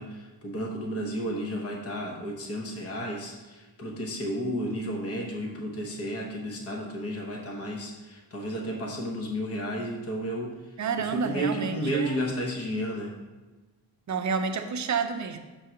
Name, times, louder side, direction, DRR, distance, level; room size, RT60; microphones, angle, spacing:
voice 1, 0.0-10.5 11.0-13.2, equal, 35° left, 0 dB, 0.9 m, -32 dB
voice 2, 10.8-12.3 14.1-15.4, right 5 dB, 45° right, 6 dB, 0.6 m, -29 dB
6.1 x 3.7 x 5.7 m, 1.2 s
wide cardioid pair, 140°, 42 cm